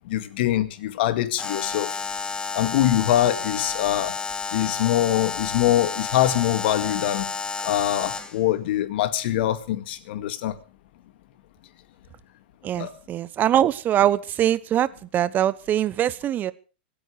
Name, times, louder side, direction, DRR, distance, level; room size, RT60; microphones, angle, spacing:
voice 1, 0.1-2.0 2.5-4.1 4.5-7.3 7.6-10.6 12.8-12.9, left 13 dB, 65° left, 11 dB, 2.0 m, -23 dB
Alarm, 1.4-8.4, left 4 dB, 15° left, 1.8 m, -31 dB
voice 2, 12.6-16.5, right 11 dB, 30° right, 18 dB, 1.0 m, -23 dB
25.0 x 9.3 x 4.9 m, 0.36 s
hypercardioid pair, 125°, 6 cm